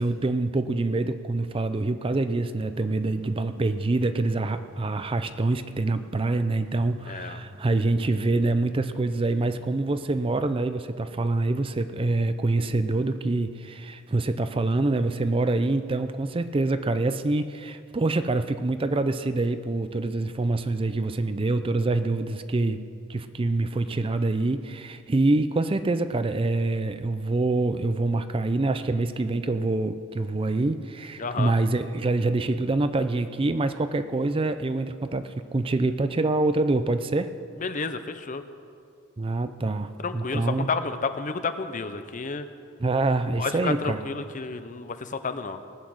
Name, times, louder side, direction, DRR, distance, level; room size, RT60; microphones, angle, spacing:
voice 1, 0.0-22.8 23.1-37.3 39.2-40.7 42.8-44.0, right 2 dB, 25° right, 11 dB, 0.4 m, -25 dB
sound 1, 2.6-10.4, right 1 dB, 40° right, 2.9 m, -48 dB
voice 2, 7.1-7.4 31.2-31.5 37.6-38.4 40.0-42.5 43.4-45.6, left 4 dB, 40° left, 10 dB, 0.7 m, -31 dB
19.0 x 8.2 x 6.4 m, 2.3 s
head